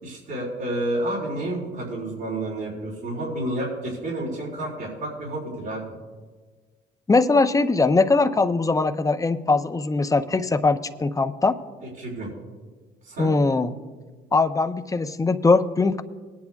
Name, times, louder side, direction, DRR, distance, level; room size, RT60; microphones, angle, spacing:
voice 1, 0.0-5.9 11.8-12.3 13.0-13.3, right 1 dB, 80° right, -7 dB, 4.1 m, -30 dB
voice 2, 7.1-11.6 13.2-13.7 14.3-16.0, left 3 dB, 15° left, 9 dB, 0.6 m, -21 dB
20.5 x 10.0 x 2.4 m, 1.4 s
supercardioid pair, 80°, 20 cm